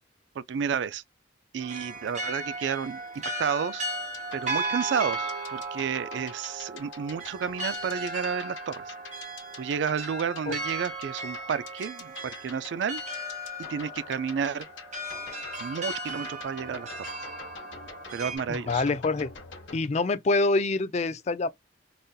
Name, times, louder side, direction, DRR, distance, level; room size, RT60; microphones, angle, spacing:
voice 1, 0.4-1.0 1.5-3.0 3.4-3.8 4.3-8.9 9.5-13.0 13.6-14.6 15.6-17.1 18.1-18.8, right 7 dB, 65° right, 0.3 m, -31 dB
sound 1, 1.6-18.4, right 2 dB, 40° right, 1.0 m, -36 dB
sound 2, 4.0-19.9, left 5 dB, 80° left, 1.2 m, -46 dB
voice 2, 18.5-19.3 19.7-21.5, left 3 dB, 35° left, 0.4 m, -26 dB
4.0 x 2.5 x 2.2 m
head